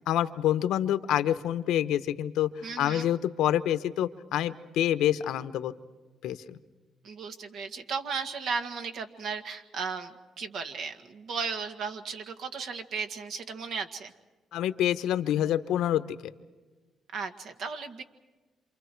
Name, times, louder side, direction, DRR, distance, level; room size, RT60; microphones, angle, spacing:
voice 1, 0.1-2.5 2.8-5.7 6.2-6.6 14.5-16.0, left 11 dB, 85° left, 12 dB, 1.0 m, -27 dB
voice 2, 2.6-3.1 7.0-14.1 17.1-18.0, right 5 dB, 70° right, 6 dB, 2.0 m, -35 dB
28.0 x 27.5 x 4.7 m, 1.3 s
cardioid pair, 90°, 0 cm